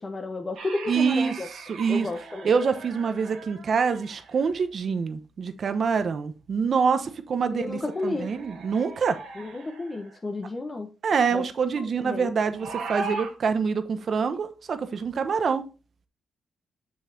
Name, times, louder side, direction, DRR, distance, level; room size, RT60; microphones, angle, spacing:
voice 1, 0.0-1.5 1.9-2.5 7.5-8.3 9.4-10.9 11.3-11.4 11.7-12.3, left 2 dB, 30° left, 1.0 m, -32 dB
sound 1, 0.6-4.7 7.6-10.2 12.5-13.3, right 3 dB, 80° right, 2.3 m, -39 dB
voice 2, 0.9-2.1 2.4-9.2 11.0-15.7, right 5 dB, 55° right, 1.0 m, -26 dB
6.5 x 6.4 x 2.8 m
cardioid pair, 80°, 0 cm